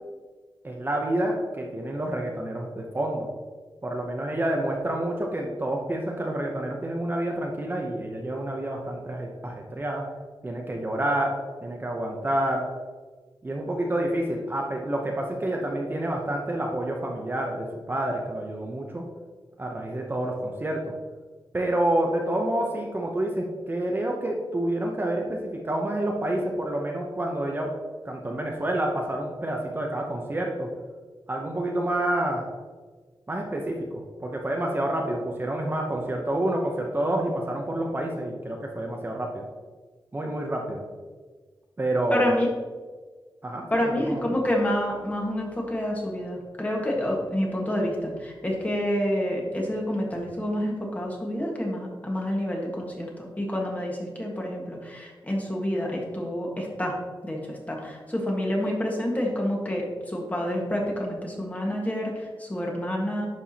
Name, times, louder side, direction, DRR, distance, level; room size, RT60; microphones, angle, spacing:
voice 1, 0.6-3.3 3.8-10.0 10.4-11.3 11.6-12.6 13.4-19.0 19.6-20.9 21.5-27.7 28.0-30.7 31.3-32.4 33.3-39.4 40.1-40.8 41.8-42.3 43.4-44.2, right 1 dB, 25° right, 0 dB, 0.8 m, -28 dB
voice 2, 42.1-42.5 43.7-57.0 57.2-63.3, equal, 20° left, -1 dB, 1.6 m, -28 dB
11.0 x 4.7 x 2.9 m, 1.4 s
wide cardioid pair, 105°, 8 cm